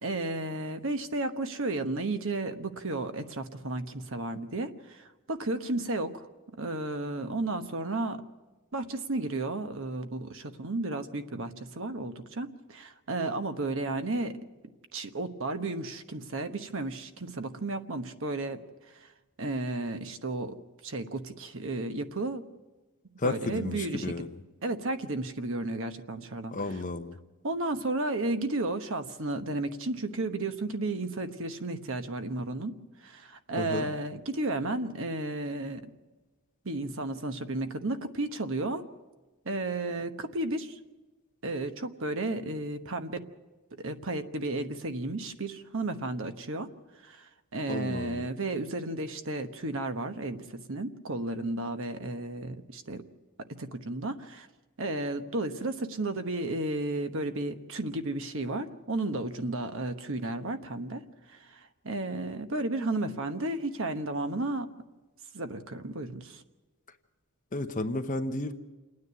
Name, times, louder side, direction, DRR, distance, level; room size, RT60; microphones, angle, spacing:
voice 1, 0.0-6.3 6.6-8.2 8.7-14.4 14.9-18.6 18.9-19.1 19.4-20.6 20.8-22.4 23.2-24.1 24.6-26.5 27.4-32.8 33.0-35.8 36.6-38.9 39.4-40.8 41.4-43.2 43.8-46.7 47.0-53.0 53.6-54.5 54.8-64.7 65.3-66.4, right 2 dB, 60° right, 8 dB, 1.1 m, -33 dB
voice 2, 23.2-24.4 26.5-27.2 33.6-33.9 47.7-48.2 67.5-68.5, left 2 dB, 35° left, 7 dB, 0.9 m, -32 dB
28.0 x 9.7 x 9.6 m, 1.2 s
head